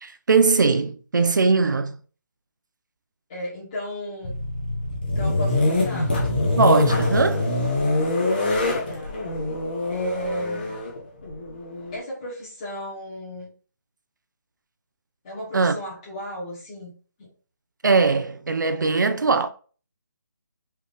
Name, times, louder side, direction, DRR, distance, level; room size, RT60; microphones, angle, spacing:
voice 1, 0.0-2.0 6.6-7.5 15.5-15.8 17.8-19.5, right 4 dB, 75° right, 0.6 m, -20 dB
voice 2, 3.3-4.3 5.1-6.1 8.8-9.1 9.9-10.8 11.9-13.5 15.2-16.9 17.2-17.3, equal, 15° left, 1.6 m, -34 dB
sound 1, 4.2-12.0, left 2 dB, 30° left, 1.0 m, -24 dB
4.7 x 3.0 x 3.4 m
hypercardioid pair, 180°, 10 cm